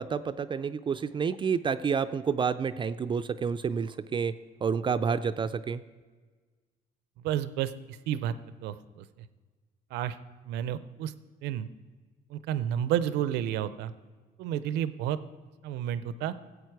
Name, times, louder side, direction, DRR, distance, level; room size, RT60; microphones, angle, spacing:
voice 1, 0.0-4.3 4.6-5.8, right 6 dB, 30° right, 11 dB, 0.4 m, -29 dB
voice 2, 7.2-8.3 8.6-9.0 9.9-10.2 10.5-11.1 11.4-11.7 12.3-13.9 14.4-15.2 15.6-16.3, right 10 dB, 90° right, 15 dB, 0.6 m, -31 dB
14.5 x 8.1 x 4.7 m, 1.4 s
cardioid pair, 110°, 17 cm